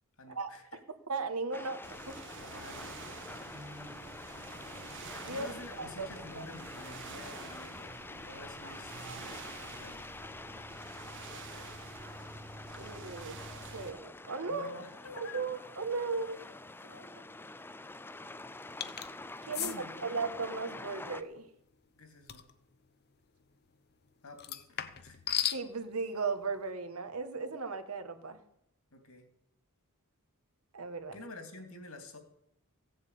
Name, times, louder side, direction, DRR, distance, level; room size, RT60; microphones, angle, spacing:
voice 1, 0.2-0.8 2.4-3.0 5.2-10.0 14.5-15.5 16.8-17.3 19.6-20.1 21.9-22.5 24.2-25.2 28.9-29.3 31.1-32.2, left 2 dB, 70° left, 6 dB, 2.9 m, -49 dB
voice 2, 1.1-1.8 5.1-5.5 5.8-6.1 6.3-6.4 12.8-13.4 13.7-14.7 15.2-16.4 19.5-21.5 25.5-28.4 30.7-31.2, right 4 dB, 75° right, 8 dB, 1.6 m, -36 dB
sound 1, 1.5-21.2, left 2 dB, 10° left, 0.5 m, -47 dB
sound 2, 1.8-13.9, right 3 dB, 55° right, 1.4 m, -48 dB
sound 3, 18.8-19.1 19.5-19.8 22.3-22.5 24.4-25.6, left 10 dB, 45° left, 0.9 m, -34 dB
16.5 x 7.8 x 8.5 m, 0.76 s
head